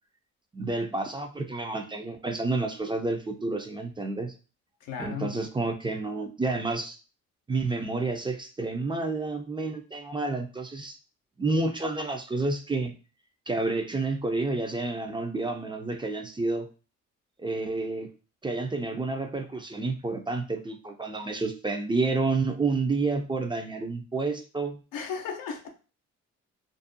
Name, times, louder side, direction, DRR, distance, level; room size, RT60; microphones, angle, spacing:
voice 1, 0.5-4.3 5.0-7.0 7.5-11.0 11.4-12.9 13.5-16.7 17.4-18.1 18.4-24.8, right 3 dB, 15° right, 5 dB, 0.4 m, -29 dB
voice 2, 4.8-5.3 24.9-25.7, left 6 dB, 80° left, 4 dB, 0.6 m, -34 dB
2.6 x 2.0 x 2.5 m, 0.35 s
supercardioid pair, 60°, 33 cm